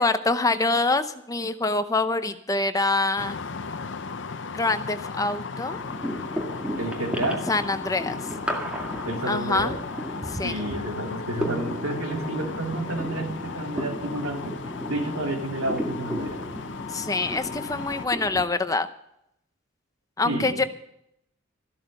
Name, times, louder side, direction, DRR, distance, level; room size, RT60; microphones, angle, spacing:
voice 1, 0.0-3.4 4.5-5.8 7.5-8.2 9.3-9.8 10.3-10.5 16.9-18.9 20.2-20.6, left 3 dB, 15° left, 10 dB, 0.6 m, -25 dB
sound 1, 3.2-18.1, left 5 dB, 60° left, 0.6 m, -36 dB
sound 2, 5.8-18.4, equal, 5° right, 1.9 m, -35 dB
voice 2, 6.8-7.4 9.0-9.8 10.4-14.6 14.9-16.4 20.2-20.7, right 1 dB, 90° right, 2 dB, 3.0 m, -30 dB
14.0 x 12.5 x 5.4 m, 0.77 s
head